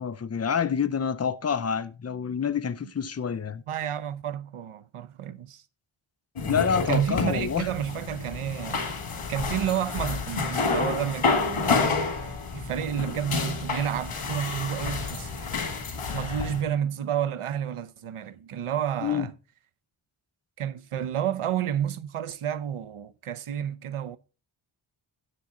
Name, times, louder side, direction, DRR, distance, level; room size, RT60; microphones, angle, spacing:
voice 1, 0.0-3.6 6.4-7.7 19.0-19.3, left 7 dB, 30° left, 0.5 m, -27 dB
voice 2, 3.7-5.6 6.9-8.9 9.3-15.5 16.1-19.3 20.6-24.2, right 10 dB, 85° right, 0.8 m, -30 dB
sound 1, 6.4-16.6, left 4 dB, 75° left, 2.0 m, -29 dB
9.9 x 7.6 x 3.6 m
wide cardioid pair, 110°, 50 cm